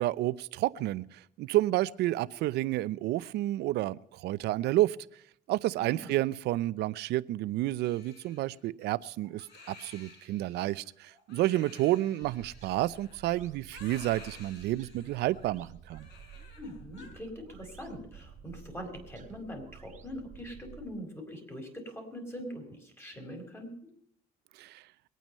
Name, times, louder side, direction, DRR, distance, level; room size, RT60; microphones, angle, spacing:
voice 1, 0.0-5.0 5.5-16.1 24.6-24.8, right 15 dB, 80° right, 18 dB, 0.6 m, -30 dB
voice 2, 5.8-6.2 16.5-23.7, equal, 15° left, 4 dB, 5.0 m, -43 dB
Crying sobbing, 7.8-17.1, left 4 dB, 85° left, 4.9 m, -54 dB
sound 1, 12.2-20.9, right 7 dB, 45° right, 1.7 m, -52 dB
22.5 x 9.2 x 5.5 m, 0.69 s
cardioid pair, 110°, 17 cm